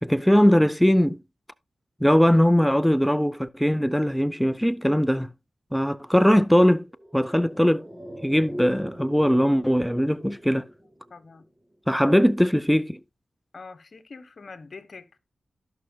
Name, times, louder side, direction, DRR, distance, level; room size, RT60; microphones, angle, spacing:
voice 1, 0.0-1.2 2.0-5.3 5.7-6.9 7.1-7.9 8.2-10.7 11.9-13.0, equal, ahead, 0.5 m, -20 dB
sound 1, 6.9-11.5 11.7-11.8, equal, 20° right, 2.3 m, -40 dB
voice 2, 11.1-11.4 13.5-15.2, left 4 dB, 60° left, 1.2 m, -44 dB
17.5 x 6.1 x 2.3 m
cardioid pair, 45°, 0 cm